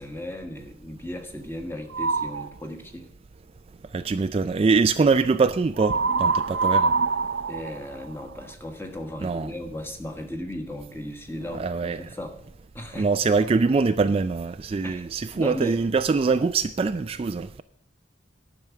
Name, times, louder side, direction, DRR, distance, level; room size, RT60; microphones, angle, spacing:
voice 1, 0.0-3.1 7.5-12.3 12.7-13.5 14.8-15.1 15.3-15.8, left 1 dB, 15° left, 1.4 m, -36 dB
sound 1, 1.9-2.5 5.8-8.5, right 4 dB, 80° right, 0.6 m, -24 dB
voice 2, 3.9-6.9 9.2-9.5 11.5-12.0 13.0-17.6, right 4 dB, 30° right, 0.3 m, -23 dB
10.5 x 6.1 x 8.2 m
head